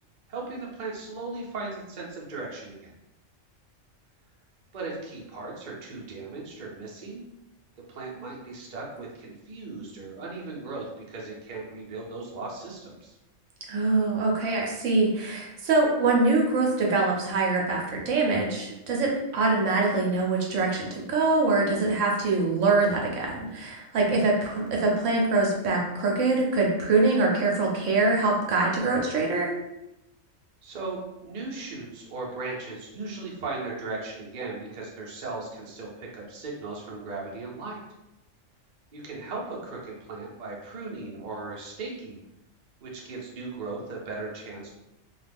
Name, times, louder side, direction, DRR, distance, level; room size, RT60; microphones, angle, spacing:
voice 1, 0.3-2.9 4.7-7.2 7.9-13.2 30.6-37.8 38.9-42.2 42.8-44.7, right 3 dB, 45° right, -3 dB, 0.7 m, -37 dB
voice 2, 13.7-29.5, right 3 dB, 75° right, -1 dB, 0.9 m, -24 dB
2.4 x 2.3 x 3.3 m, 0.92 s
omnidirectional pair, 1.4 m